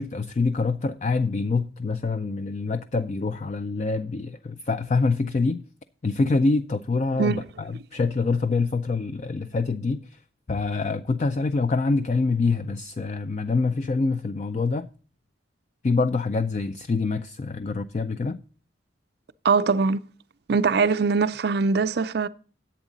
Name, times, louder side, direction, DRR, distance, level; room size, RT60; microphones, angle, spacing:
voice 1, 0.0-5.6 6.0-10.2 10.5-14.9 15.8-18.4, left 3 dB, 35° left, 0.3 m, -25 dB
voice 2, 19.4-20.0 20.5-22.3, right 4 dB, 55° right, 0.4 m, -22 dB
11.0 x 8.2 x 3.9 m
head